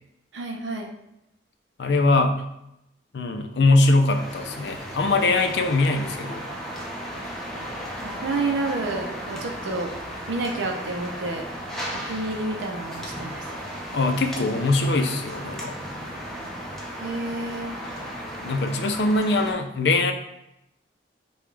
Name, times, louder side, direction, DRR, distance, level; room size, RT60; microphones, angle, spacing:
voice 1, 0.3-0.9 8.0-9.9 10.3-11.4 11.9-13.4 17.0-17.8, right 2 dB, 80° right, 2 dB, 0.6 m, -29 dB
voice 2, 1.8-2.4 3.1-6.4 13.9-15.8 18.4-20.1, left 2 dB, 65° left, 6 dB, 0.4 m, -22 dB
sound 1, 4.1-19.5, equal, ahead, 0.6 m, -35 dB
5.0 x 2.3 x 3.3 m, 0.82 s
head